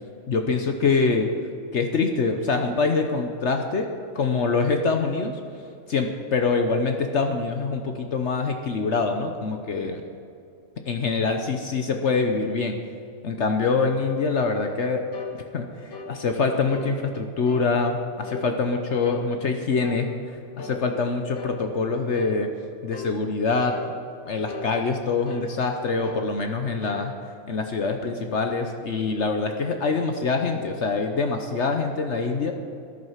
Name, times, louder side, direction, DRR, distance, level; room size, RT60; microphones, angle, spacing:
voice 1, 0.3-1.3 1.7-5.4 5.9-10.0 10.9-12.8 13.2-15.0 15.5-22.5 22.8-23.8 24.3-27.1 27.5-32.5, left 4 dB, 55° left, 5 dB, 1.1 m, -25 dB
sound 1, 15.1-15.4 15.9-16.1 16.7-16.9 17.5-17.7 18.2-18.5 19.0-19.3 19.8-20.1 20.6-20.8 21.4-21.6 22.1-22.4 22.9-23.1 23.7-24.0 24.5-24.7 25.3-25.5 26.0-26.3 26.8-27.0, left 4 dB, 75° left, 1.8 m, -37 dB
13.0 x 11.0 x 5.8 m, 2.5 s
omnidirectional pair, 1.5 m